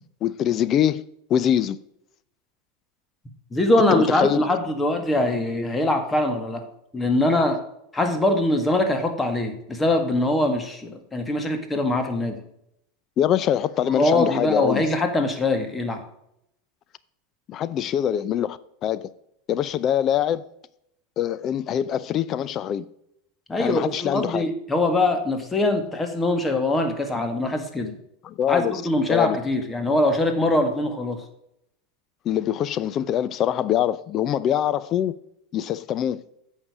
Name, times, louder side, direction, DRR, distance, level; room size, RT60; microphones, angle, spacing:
voice 1, 0.2-1.0 1.3-1.8 3.9-4.4 13.2-14.8 17.5-19.1 19.5-20.5 21.2-22.9 23.6-24.5 28.2-28.8 29.1-29.4 32.2-35.1 35.5-36.2, left 10 dB, 40° left, 0.6 m, -24 dB
voice 2, 3.5-6.7 6.9-7.6 7.9-12.4 13.8-16.0 23.5-27.9 28.5-31.2, left 2 dB, 15° left, 1.8 m, -23 dB
8.8 x 6.5 x 4.9 m
supercardioid pair, 110°, 0 cm